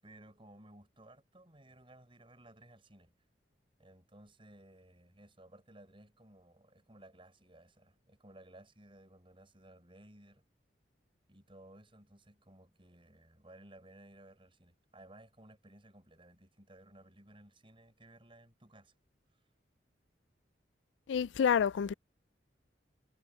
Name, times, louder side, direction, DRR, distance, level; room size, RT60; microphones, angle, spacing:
voice 1, 0.0-3.1 3.8-10.4 11.3-19.0, right 1 dB, 30° right, 6.9 m, -58 dB
voice 2, 21.1-21.9, left 7 dB, 80° left, 0.3 m, -28 dB
head